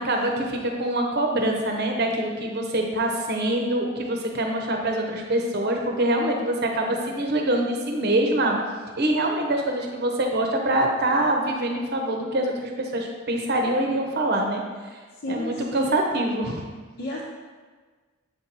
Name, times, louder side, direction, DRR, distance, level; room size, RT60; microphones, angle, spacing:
voice 1, 0.0-8.6 9.0-14.6 15.3-16.7, right 1 dB, 50° right, 2 dB, 0.9 m, -24 dB
voice 2, 15.2-15.9 17.0-17.2, left 1 dB, 50° left, -6 dB, 0.9 m, -31 dB
7.7 x 4.4 x 4.1 m, 1.4 s
head